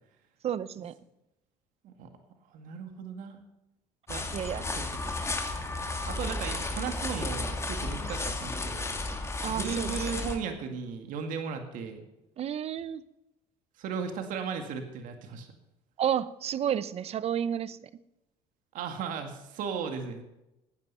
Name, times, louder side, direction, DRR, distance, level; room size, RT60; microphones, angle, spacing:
voice 1, 0.4-0.9 4.3-4.7 9.4-10.3 12.4-13.0 16.0-17.8, right 9 dB, 45° right, 17 dB, 0.8 m, -31 dB
voice 2, 2.5-3.4 4.1-4.2 4.8-5.0 6.1-9.0 9.5-12.0 13.8-15.5 18.7-20.2, right 6 dB, 70° right, 5 dB, 2.1 m, -36 dB
sound 1, 4.1-10.4, left 2 dB, 20° left, 2.3 m, -33 dB
14.5 x 9.7 x 5.7 m, 0.91 s
supercardioid pair, 95°, 14 cm